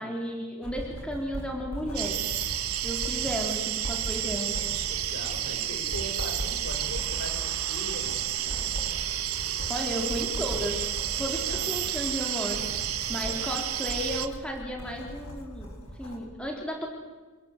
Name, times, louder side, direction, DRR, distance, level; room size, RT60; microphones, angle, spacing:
voice 1, 0.0-2.2 2.8-4.5 9.7-10.8 11.1-15.7 16.0-16.9, equal, 5° left, 0 dB, 4.1 m, -34 dB
Writing, 0.6-16.2, equal, 80° left, 7.3 m, -39 dB
sound 1, 1.9-14.3, right 12 dB, 85° right, 1.4 m, -31 dB
voice 2, 4.8-8.8 11.3-11.9 13.1-13.5, equal, 60° left, 4 dB, 6.4 m, -41 dB
28.0 x 21.0 x 8.3 m, 1.3 s
head